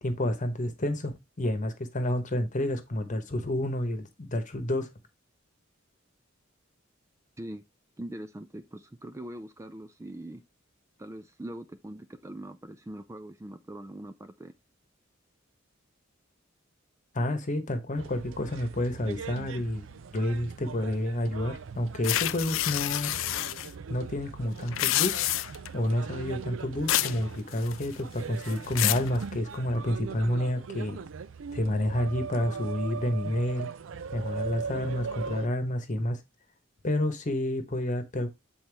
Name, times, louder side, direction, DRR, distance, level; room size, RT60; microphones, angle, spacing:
voice 1, 0.0-4.9 17.1-19.8 20.1-23.1 23.9-25.3 25.7-31.0 31.5-33.7 34.1-36.2 36.8-38.3, left 1 dB, 40° left, 1.1 m, -29 dB
voice 2, 8.0-10.4 11.0-14.5, right 1 dB, 15° right, 0.4 m, -42 dB
sound 1, 18.0-35.5, right 5 dB, 75° right, 0.5 m, -40 dB
sound 2, 22.0-23.7 24.6-25.7 26.9-27.2 27.5-28.0 28.4-29.1, left 15 dB, 75° left, 0.4 m, -28 dB
7.9 x 4.2 x 3.4 m
head